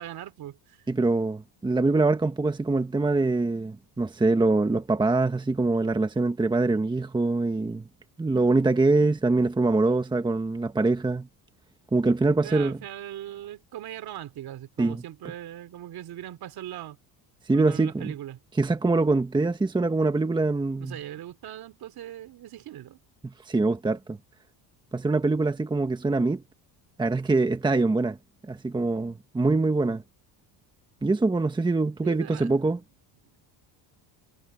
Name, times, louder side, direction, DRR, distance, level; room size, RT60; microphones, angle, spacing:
voice 1, 0.0-0.8 12.4-17.0 17.5-18.4 20.8-23.0 32.0-32.5, right 12 dB, 55° right, 2.9 m, -40 dB
voice 2, 0.9-7.8 8.2-11.3 11.9-12.8 14.8-15.0 17.5-18.1 18.6-21.0 23.2-24.2 24.9-26.4 27.0-28.2 28.4-30.0 31.0-32.8, right 3 dB, 10° right, 1.1 m, -24 dB
cardioid pair, 135°, 45 cm